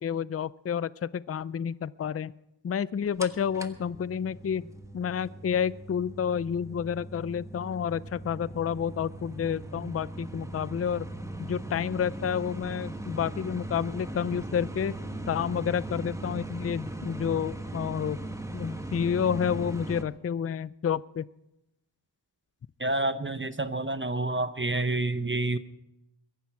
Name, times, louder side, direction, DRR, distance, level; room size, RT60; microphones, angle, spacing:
voice 1, 0.0-2.3 2.6-4.6 4.9-11.1 11.4-14.9 15.3-18.2 18.5-21.2, left 8 dB, 35° left, 19 dB, 0.4 m, -30 dB
sound 1, 3.2-20.0, right 1 dB, 5° right, 1.2 m, -39 dB
voice 2, 22.8-25.6, right 2 dB, 25° right, 12 dB, 0.7 m, -28 dB
22.5 x 10.5 x 4.7 m, 0.88 s
wide cardioid pair, 60°, 43 cm